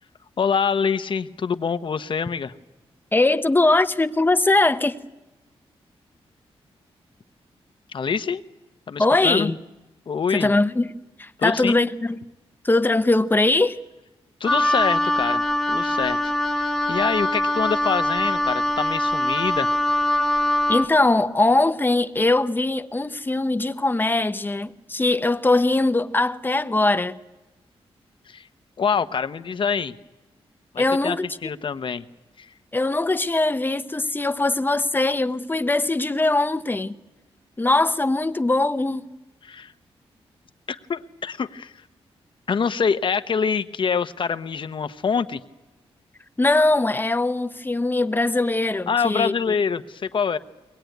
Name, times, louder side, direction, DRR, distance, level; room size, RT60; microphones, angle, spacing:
voice 1, 0.4-2.5 7.9-8.4 8.9-9.5 10.1-10.5 11.4-11.8 14.4-15.4 15.7-16.2 16.5-19.7 28.3-28.5 28.8-30.0 30.7-31.2 31.4-32.0 32.4-32.5 39.4-39.7 40.7-41.7 42.5-45.4 48.9-50.4, left 6 dB, 50° left, 1.0 m, -25 dB
voice 2, 3.1-5.0 9.0-9.6 10.3-10.9 11.2-12.2 12.6-13.8 20.7-27.2 30.8-31.3 32.7-36.9 37.6-39.1 46.4-49.3, left 2 dB, 20° left, 0.9 m, -21 dB
Wind instrument woodwind instrument, 14.5-20.9, left 1 dB, ahead, 1.1 m, -22 dB
22.0 x 19.5 x 9.3 m
cardioid pair, 85°, 10 cm